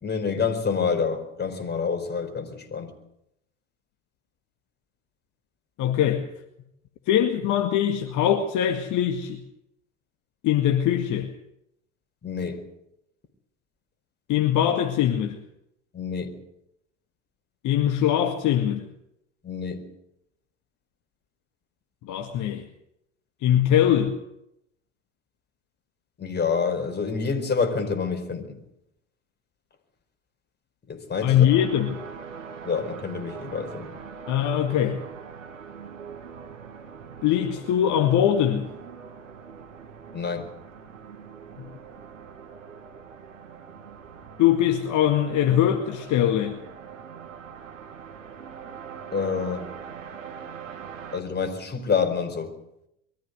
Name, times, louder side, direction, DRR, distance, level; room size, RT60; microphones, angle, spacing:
voice 1, 0.0-2.9 12.2-12.6 15.9-16.3 19.4-19.8 26.2-28.6 30.9-31.5 32.6-33.9 40.1-40.5 49.1-49.7 51.1-52.5, left 5 dB, 25° left, 4.7 m, -27 dB
voice 2, 5.8-6.2 7.1-9.4 10.4-11.3 14.3-15.4 17.6-18.8 22.0-22.6 23.4-24.2 31.2-32.0 34.3-35.0 37.2-38.7 44.4-46.6, left 10 dB, 50° left, 2.0 m, -22 dB
sound 1, 31.5-51.2, right 6 dB, 85° right, 2.1 m, -42 dB
23.0 x 14.0 x 9.5 m
hypercardioid pair, 75°, 37 cm